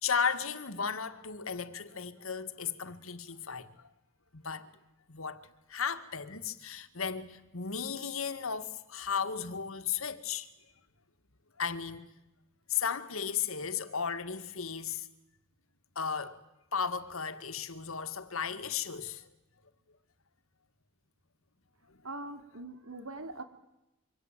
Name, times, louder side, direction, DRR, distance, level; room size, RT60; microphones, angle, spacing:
voice 1, 0.0-3.9 4.3-4.7 5.1-10.5 11.6-12.1 12.7-15.1 16.0-16.4 16.7-19.3, left 6 dB, 75° left, 1.9 m, -35 dB
voice 2, 22.0-23.4, right 2 dB, 90° right, 3.1 m, -42 dB
25.5 x 25.0 x 9.1 m
head